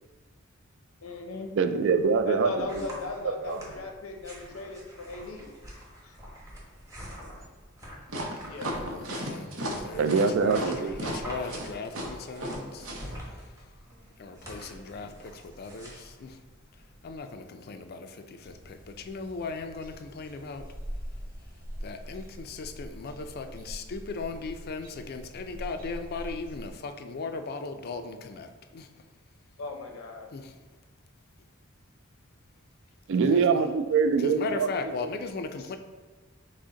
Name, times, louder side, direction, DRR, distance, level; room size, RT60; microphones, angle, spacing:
voice 1, 1.0-1.5 2.3-5.5 6.0-6.2 8.4-8.7 29.6-30.3 34.6-34.7 35.6-35.7, left 3 dB, 85° left, 3 dB, 0.7 m, -37 dB
voice 2, 1.6-2.9 3.2-3.6 10.0-11.1 33.1-34.7 34.9-35.1, right 5 dB, 60° right, 9 dB, 0.3 m, -24 dB
sound 1, 2.0-17.2, equal, 15° right, 1.0 m, -46 dB
sound 2, 8.1-13.0, right 1 dB, 85° right, 0.8 m, -34 dB
voice 3, 8.6-10.0 10.4-12.8 14.2-16.3 17.0-20.6 21.8-28.9 30.3-30.5 33.3-33.4 34.2-35.8, left 4 dB, 50° left, 7 dB, 0.4 m, -38 dB
sound 3, 18.4-26.7, equal, 45° right, 0.8 m, -43 dB
6.2 x 2.1 x 3.8 m, 1.3 s
head